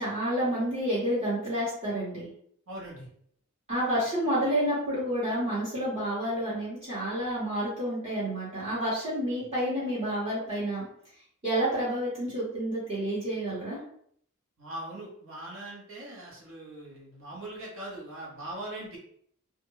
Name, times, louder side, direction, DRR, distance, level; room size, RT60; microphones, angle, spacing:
voice 1, 0.0-2.3 3.7-10.9 11.4-13.8, right 1 dB, 30° right, -11 dB, 1.1 m, -29 dB
voice 2, 2.7-3.1 14.6-19.0, right 1 dB, 65° right, -4 dB, 1.1 m, -41 dB
2.4 x 2.2 x 3.1 m, 0.65 s
head